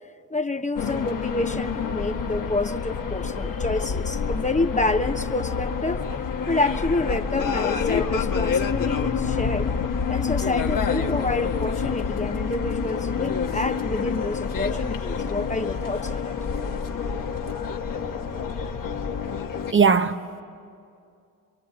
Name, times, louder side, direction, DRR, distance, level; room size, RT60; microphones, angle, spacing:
voice 1, 0.3-6.0 6.5-9.7 10.1-16.3, left 2 dB, 20° left, 1.0 m, -28 dB
sound 1, 0.8-19.7, left 6 dB, 55° left, 1.7 m, -27 dB
voice 2, 19.7-20.4, right 5 dB, 30° right, 1.0 m, -19 dB
26.5 x 23.0 x 8.8 m
supercardioid pair, 55°, 38 cm